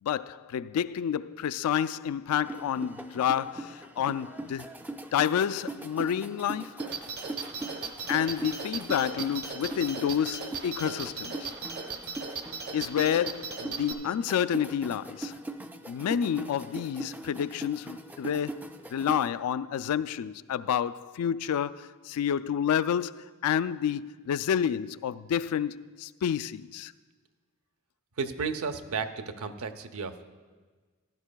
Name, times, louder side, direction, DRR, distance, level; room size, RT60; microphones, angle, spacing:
voice 1, 0.0-4.7 5.1-6.8 8.1-11.5 12.7-15.3 15.9-18.6 18.9-26.9, left 9 dB, 80° left, 0.3 m, -29 dB
sound 1, 2.4-19.3, right 2 dB, 10° right, 0.4 m, -41 dB
sound 2, 6.8-13.9, right 5 dB, 50° right, 0.9 m, -37 dB
voice 2, 28.2-30.2, right 5 dB, 75° right, 0.7 m, -33 dB
16.0 x 12.0 x 2.2 m
head